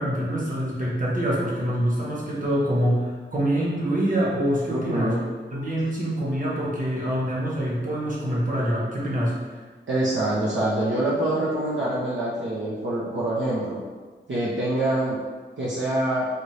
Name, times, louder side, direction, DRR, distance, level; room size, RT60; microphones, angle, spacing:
voice 1, 0.0-5.1 5.5-9.6, equal, 45° right, -6 dB, 1.3 m, -25 dB
voice 2, 4.7-5.2 9.9-13.8 14.3-15.2 15.6-16.3, right 1 dB, 75° right, -8 dB, 0.8 m, -25 dB
4.3 x 2.7 x 3.3 m, 1.4 s
wide cardioid pair, 65°, 19 cm